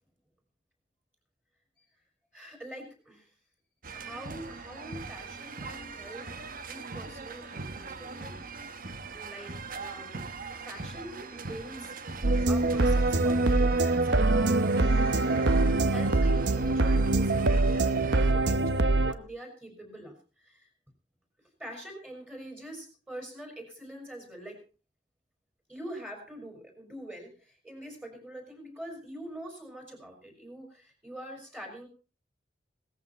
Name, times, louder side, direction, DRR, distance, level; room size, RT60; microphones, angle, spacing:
voice 1, 2.3-3.3 3.9-6.3 6.6-8.4 9.1-10.3 10.6-11.9 12.5-14.9 15.8-20.7 21.6-24.6 25.7-31.9, right 1 dB, 10° right, 3 dB, 4.9 m, -44 dB
sound 1, 3.8-18.3, right 4 dB, 50° right, 1.2 m, -41 dB
sound 2, 12.2-19.1, right 2 dB, 85° right, 0.9 m, -24 dB
17.5 x 14.0 x 4.3 m, 0.35 s
head